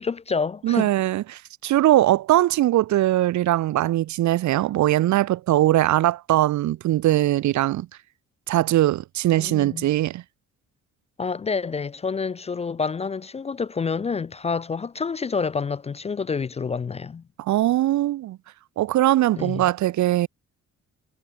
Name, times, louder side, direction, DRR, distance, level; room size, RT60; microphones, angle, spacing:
voice 1, 0.0-0.9 9.4-9.9 11.2-17.2 19.4-19.6, left 5 dB, 25° left, 0.3 m, -28 dB
voice 2, 0.6-7.9 8.5-10.2 17.4-18.4 18.8-20.3, right 14 dB, 75° right, 0.9 m, -21 dB
cardioid pair, 115°, 29 cm